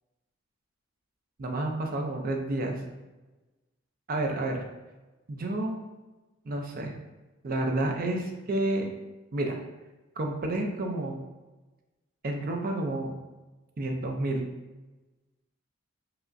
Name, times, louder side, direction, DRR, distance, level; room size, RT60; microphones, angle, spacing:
voice 1, 1.4-2.8 4.1-4.6 5.3-5.8 6.5-6.9 7.4-8.9 9.3-9.6 10.2-11.2 12.2-13.1 13.8-14.5, right 2 dB, 40° right, 2 dB, 0.4 m, -30 dB
4.7 x 2.0 x 2.5 m, 1.2 s
head